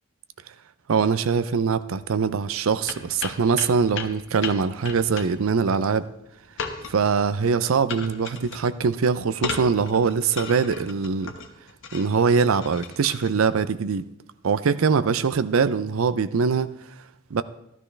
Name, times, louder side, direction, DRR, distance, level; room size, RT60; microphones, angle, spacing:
voice 1, 0.9-6.1 6.9-11.3 11.9-14.1 14.4-16.7 17.3-17.4, right 5 dB, 75° right, 0.5 m, -22 dB
sound 1, 2.9-13.3, left 5 dB, 65° left, 1.2 m, -36 dB
13.5 x 12.5 x 3.3 m
head